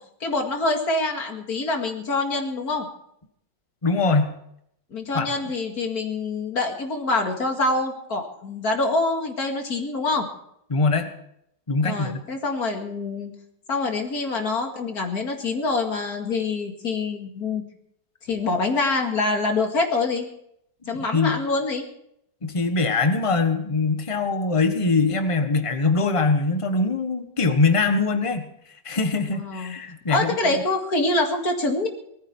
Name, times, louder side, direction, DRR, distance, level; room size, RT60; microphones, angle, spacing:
voice 1, 0.2-2.9 4.9-10.3 11.8-13.3 13.7-17.6 18.3-20.3 20.9-21.9 29.3-29.7 30.1-31.9, left 3 dB, 60° left, 3 dB, 2.6 m, -25 dB
voice 2, 3.8-4.3 5.1-5.3 10.7-11.1 11.7-12.2 20.9-21.4 22.4-28.4 28.8-30.6, left 3 dB, 20° left, 7 dB, 1.2 m, -22 dB
19.5 x 14.0 x 4.5 m, 0.73 s
omnidirectional pair, 1.8 m